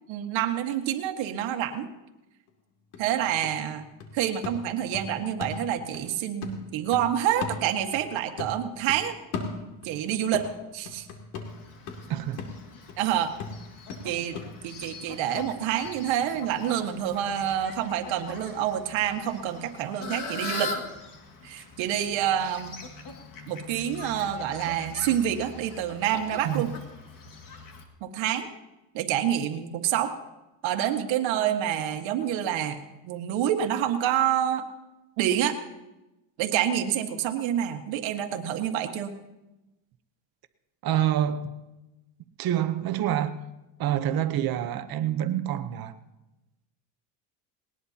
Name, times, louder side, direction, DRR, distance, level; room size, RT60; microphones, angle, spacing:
voice 1, 0.1-1.9 3.0-9.1 9.8-10.5 10.7-11.1 13.0-13.3 14.0-14.4 14.6-20.8 21.4-22.8 23.5-26.7 28.0-28.5 28.9-30.2 30.6-32.8 33.0-34.7 35.2-35.6 36.4-39.2, right 10 dB, 65° right, 1.7 m, -27 dB
sound 1, 2.5-2.6 2.9-6.1 6.4-8.1 8.4-10.0 10.3-16.0 16.3-16.4, left 4 dB, 90° left, 2.5 m, -38 dB
Fowl, 11.5-27.8, left 3 dB, 40° left, 2.2 m, -42 dB
voice 2, 12.1-12.5 26.4-26.7 40.8-41.5 42.4-43.4 43.8-45.9, right 11 dB, 45° right, 0.9 m, -27 dB
19.5 x 19.0 x 2.9 m
cardioid pair, 130°, 49 cm